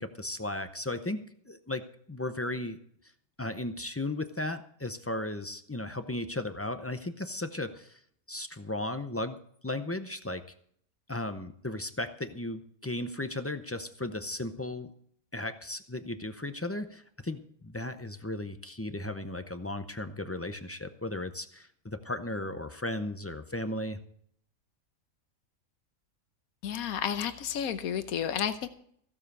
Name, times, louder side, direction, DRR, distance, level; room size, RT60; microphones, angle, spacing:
voice 1, 0.0-2.8 3.4-8.0 8.3-9.4 9.6-10.5 11.1-14.9 15.3-24.0, left 1 dB, 20° left, 9 dB, 0.3 m, -35 dB
voice 2, 26.6-28.7, left 8 dB, 85° left, 10 dB, 1.3 m, -31 dB
15.5 x 7.3 x 6.7 m, 0.63 s
omnidirectional pair, 1.5 m